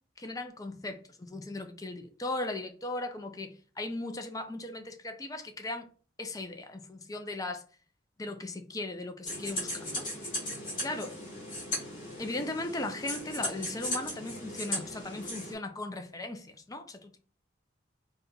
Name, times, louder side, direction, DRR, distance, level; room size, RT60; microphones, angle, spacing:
voice 1, 0.2-5.9 6.2-7.6 8.2-10.1 10.8-11.4 12.2-17.2, left 2 dB, 20° left, 0.4 m, -38 dB
sound 1, 9.2-15.5, left 1 dB, 45° left, 2.1 m, -37 dB
4.0 x 2.2 x 3.8 m
head